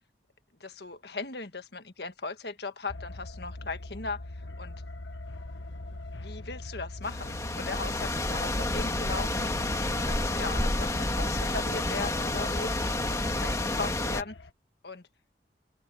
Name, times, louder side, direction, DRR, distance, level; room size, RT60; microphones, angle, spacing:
voice 1, 0.6-4.8 6.2-9.7 10.0-14.3 14.8-15.0, left 3 dB, 65° left, 1.6 m, -38 dB
sound 1, 2.9-14.5, left 2 dB, 90° left, 1.4 m, -42 dB
sound 2, 7.0-14.2, left 1 dB, 20° left, 1.9 m, -29 dB
open air
head